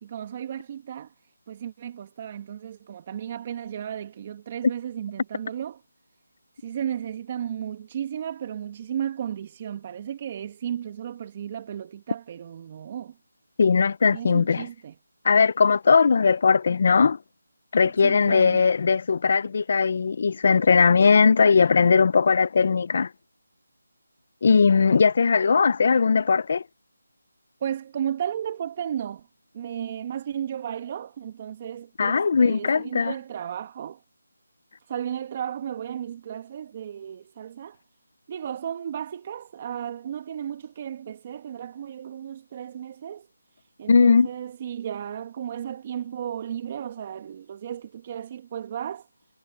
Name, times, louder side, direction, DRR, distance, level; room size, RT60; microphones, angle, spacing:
voice 1, 0.0-1.1 1.5-5.8 6.6-13.2 14.1-14.9 18.0-18.6 27.6-29.3 29.5-34.0 34.9-37.8 38.3-43.3 43.8-49.1, right 9 dB, 30° right, 1.6 m, -34 dB
voice 2, 13.6-14.7 15.2-17.2 17.7-23.1 24.4-26.6 32.0-33.1 43.9-44.3, left 5 dB, 45° left, 1.0 m, -19 dB
figure-of-eight pair, 165°, 0 cm